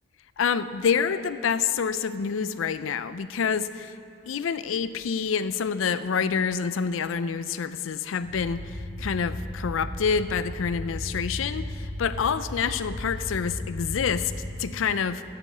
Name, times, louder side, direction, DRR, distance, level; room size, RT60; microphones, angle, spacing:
voice 1, 0.4-3.9 4.3-14.3 14.6-15.2, left 6 dB, 90° left, 14 dB, 0.4 m, -27 dB
sound 1, 8.2-14.5, left 1 dB, 70° left, 1.8 m, -35 dB
9.6 x 7.7 x 8.0 m, 2.5 s
head